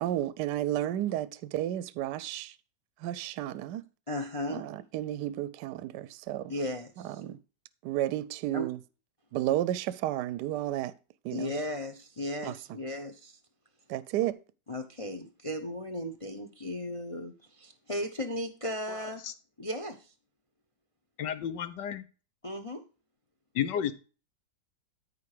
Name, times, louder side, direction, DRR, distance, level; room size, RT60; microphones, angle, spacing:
voice 1, 0.0-2.5 3.0-3.8 4.5-6.5 7.2-7.4 7.8-8.8 9.3-10.9 11.2-11.5 12.4-12.5 13.9-14.4, right 13 dB, 75° right, 1.2 m, -32 dB
voice 2, 4.1-4.7 6.5-7.2 8.5-8.7 11.3-13.4 14.7-19.3 19.6-20.1 22.4-22.8, left 1 dB, 30° left, 0.7 m, -36 dB
voice 3, 21.2-22.0 23.5-23.9, left 9 dB, 75° left, 1.6 m, -31 dB
13.5 x 4.7 x 4.9 m
omnidirectional pair, 1.9 m